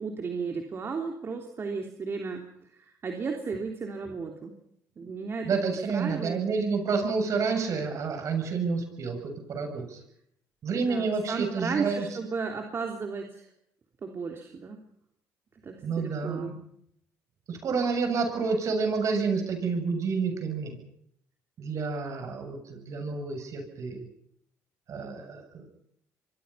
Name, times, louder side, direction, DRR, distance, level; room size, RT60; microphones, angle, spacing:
voice 1, 0.0-4.5 5.0-6.4 10.7-13.5 14.0-14.8 15.6-16.6, right 5 dB, 40° right, 3 dB, 3.3 m, -34 dB
voice 2, 5.4-10.0 10.6-12.1 15.8-16.5 17.5-20.8 21.6-24.0 24.9-25.6, right 4 dB, 55° right, 5 dB, 7.4 m, -29 dB
26.5 x 23.0 x 5.8 m, 0.72 s
cardioid pair, 95°, 6 cm